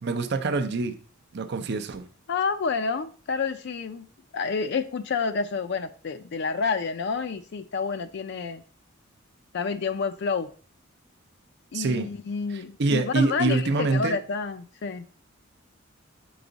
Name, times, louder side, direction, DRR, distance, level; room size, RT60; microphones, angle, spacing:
voice 1, 0.0-1.0 1.3-2.1 11.7-12.1 12.5-14.2, right 3 dB, 55° right, 0.5 m, -25 dB
voice 2, 2.3-4.1 4.3-8.6 9.5-10.5 11.7-15.0, left 5 dB, 55° left, 0.4 m, -29 dB
7.8 x 4.8 x 3.9 m
head